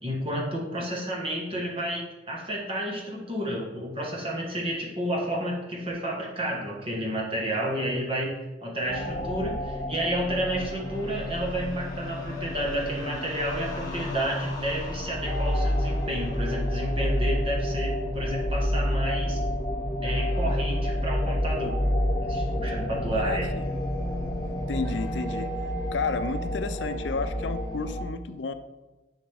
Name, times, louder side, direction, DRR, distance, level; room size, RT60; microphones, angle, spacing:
voice 1, 0.0-8.3 8.6-19.4 20.0-21.7 22.2-23.5, right 1 dB, 30° right, -2 dB, 1.4 m, -31 dB
sound 1, 8.9-28.0, left 1 dB, 20° left, 1.3 m, -29 dB
voice 2, 23.1-23.6 24.7-25.5 25.9-28.5, left 4 dB, 75° left, 10 dB, 0.5 m, -32 dB
10.0 x 4.0 x 3.4 m, 1.1 s
head